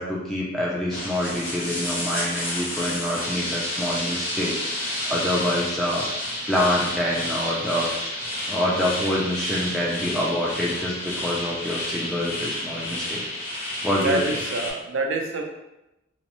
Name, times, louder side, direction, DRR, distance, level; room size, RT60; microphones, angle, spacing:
voice 1, 0.0-8.1 8.5-13.2 13.8-14.4, left 1 dB, ahead, -5 dB, 0.4 m, -26 dB
sound 1, 0.9-14.7, left 1 dB, 50° left, 1.1 m, -30 dB
voice 2, 14.0-15.4, right 3 dB, 90° right, 3 dB, 0.5 m, -26 dB
2.9 x 2.0 x 2.9 m, 0.92 s
head